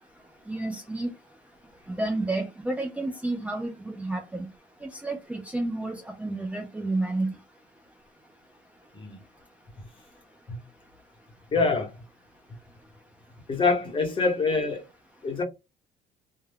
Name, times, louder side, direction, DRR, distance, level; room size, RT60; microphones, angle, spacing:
voice 1, 0.5-1.1 2.0-4.5 4.8-7.3, right 2 dB, 10° right, 0.4 m, -30 dB
voice 2, 11.5-12.0 13.5-14.8 15.2-15.4, left 4 dB, 30° left, 1.0 m, -25 dB
2.2 x 2.2 x 3.3 m
cardioid pair, 110°, 17 cm